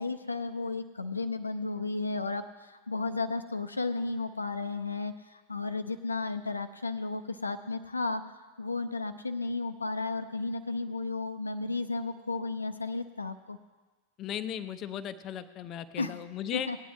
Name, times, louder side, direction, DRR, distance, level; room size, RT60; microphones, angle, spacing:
voice 1, 0.0-8.2 8.6-13.6 16.0-16.2 16.5-16.8, left 3 dB, 80° left, 9 dB, 0.5 m, -33 dB
voice 2, 14.2-16.7, left 10 dB, 30° left, 11 dB, 0.6 m, -36 dB
18.0 x 9.2 x 3.2 m, 1.3 s
figure-of-eight pair, 90°, 0 cm